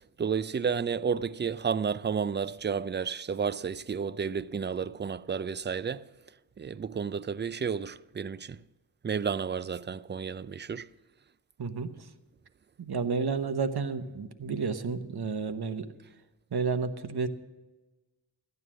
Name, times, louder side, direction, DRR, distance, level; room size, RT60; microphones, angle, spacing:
voice 1, 0.2-6.1 6.6-8.6 9.0-10.9, right 6 dB, 25° right, 0.3 m, -31 dB
voice 2, 12.8-15.9 16.5-17.3, right 5 dB, 55° right, 1.0 m, -31 dB
14.0 x 9.6 x 6.1 m
cardioid pair, 55°, 45 cm